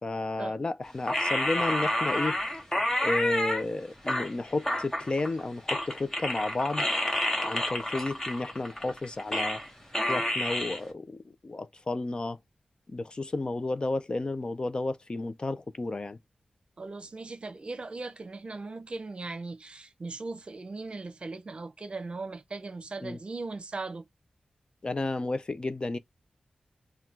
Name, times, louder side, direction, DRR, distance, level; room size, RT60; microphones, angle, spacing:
voice 1, 0.0-2.4 3.0-6.9 7.4-9.6 10.1-12.4 12.9-16.2 23.0-23.2 24.8-26.0, left 2 dB, 40° left, 0.4 m, -32 dB
sound 1, 1.1-3.6 4.1-5.4 5.7-9.7 9.9-10.8, left 1 dB, 20° left, 1.3 m, -29 dB
voice 2, 16.8-24.1, right 3 dB, 50° right, 0.8 m, -38 dB
3.6 x 2.3 x 4.4 m
wide cardioid pair, 75°, 2 cm